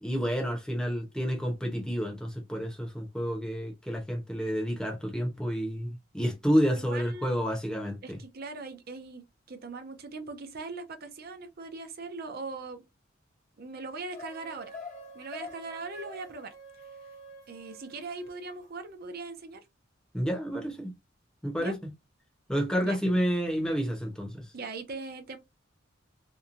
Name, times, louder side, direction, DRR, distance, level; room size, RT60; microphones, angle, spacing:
voice 1, 0.0-8.2 20.1-20.9 21.4-21.7 22.5-24.4, equal, 5° left, 0.8 m, -29 dB
voice 2, 6.8-7.3 8.0-12.8 13.6-14.8 15.1-16.5 17.5-19.6 21.6-21.7 22.8-23.0 24.5-25.4, right 3 dB, 55° right, 0.6 m, -40 dB
sound 1, 14.1-18.6, left 1 dB, 40° left, 0.8 m, -46 dB
2.8 x 2.3 x 2.4 m
head